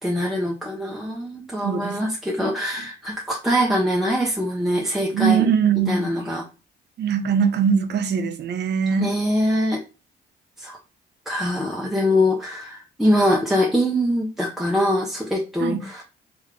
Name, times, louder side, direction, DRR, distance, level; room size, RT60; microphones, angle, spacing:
voice 1, 0.0-5.5 5.9-6.4 9.0-9.8 10.6-10.8 11.3-16.0, equal, ahead, 0.8 m, -23 dB
voice 2, 1.6-2.1 2.4-2.5 5.1-6.1 7.0-9.2 15.6-15.8, right 6 dB, 60° right, 0.7 m, -21 dB
3.5 x 3.5 x 3.2 m
cardioid pair, 90°, 20 cm